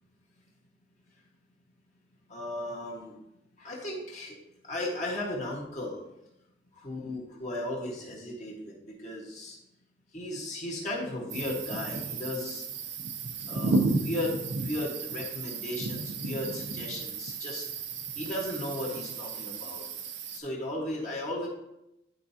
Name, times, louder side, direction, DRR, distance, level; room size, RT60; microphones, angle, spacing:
voice 1, 2.3-3.2 3.6-4.3 4.6-6.0 6.7-9.6 10.1-12.6 13.5-17.7 18.1-19.8 20.3-21.5, left 1 dB, 35° left, -4 dB, 1.5 m, -35 dB
sound 1, 11.3-20.4, right 3 dB, 60° right, 0.7 m, -33 dB
10.5 x 4.6 x 2.8 m, 0.89 s
head